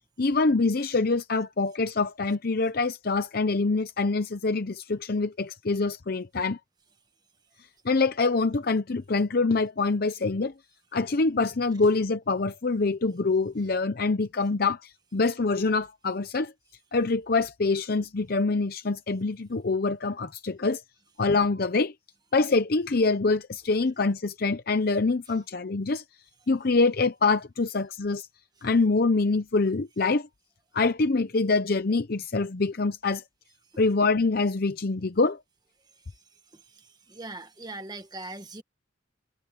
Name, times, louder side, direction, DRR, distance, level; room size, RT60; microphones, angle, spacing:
voice 1, 0.2-6.6 7.8-10.5 10.9-16.5 16.9-20.8 21.2-21.9 22.3-26.0 26.5-28.3 28.6-30.3 30.7-33.2 33.8-35.4, left 3 dB, 50° left, 0.7 m, -25 dB
voice 2, 36.8-38.6, right 2 dB, 20° right, 1.4 m, -40 dB
head